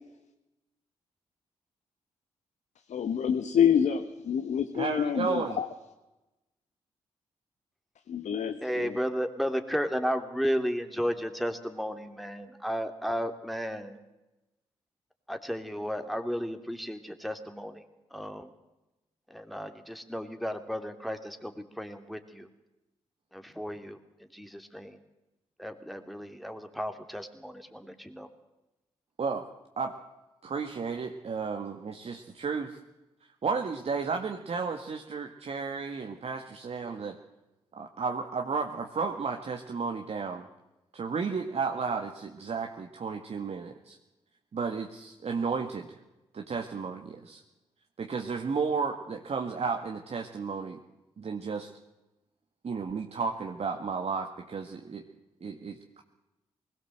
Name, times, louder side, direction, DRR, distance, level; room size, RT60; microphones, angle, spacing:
voice 1, 2.9-5.7 8.1-9.0, left 8 dB, 70° left, 8 dB, 1.2 m, -27 dB
voice 2, 4.7-5.6 29.2-29.4 29.8-29.9 30.4-32.8 33.4-37.2 37.8-40.5 40.9-44.0 44.5-45.9 46.3-47.4 48.0-50.8 51.2-51.7 52.6-55.0 55.4-56.0, right 5 dB, 55° right, 3 dB, 1.8 m, -33 dB
voice 3, 8.6-14.0 15.3-17.7 18.1-18.5 19.3-22.5 23.3-24.0 24.3-25.0 25.6-28.3, equal, ahead, 6 dB, 2.9 m, -33 dB
20.5 x 17.0 x 7.8 m, 1.0 s
hypercardioid pair, 40°, 13 cm